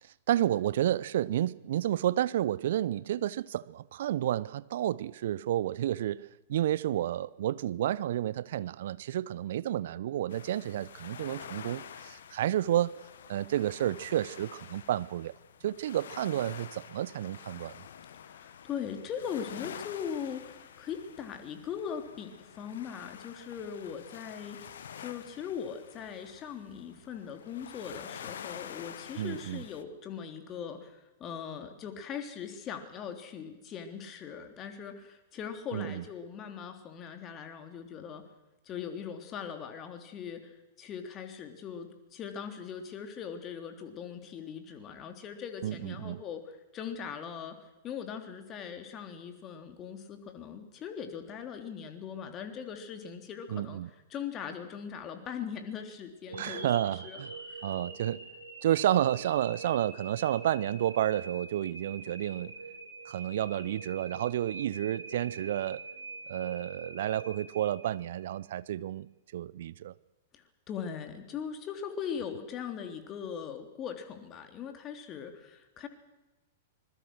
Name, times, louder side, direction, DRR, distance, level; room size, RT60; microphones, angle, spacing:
voice 1, 0.3-13.0 13.3-15.3 15.6-17.8 29.2-29.6 35.7-36.0 45.6-46.2 53.5-53.9 56.3-57.3 57.6-58.2 58.6-62.5 63.0-65.8 66.3-69.9, right 12 dB, 55° right, 0.7 m, -31 dB
sound 1, 10.3-29.8, left 8 dB, 60° left, 1.4 m, -48 dB
voice 2, 18.3-24.7 25.0-38.2 38.6-47.6 47.8-53.8 54.1-57.7 70.3-75.9, left 7 dB, 30° left, 3.2 m, -40 dB
sound 2, 56.3-68.4, right 3 dB, 90° right, 5.5 m, -45 dB
26.0 x 21.5 x 6.3 m
figure-of-eight pair, 100°, 0 cm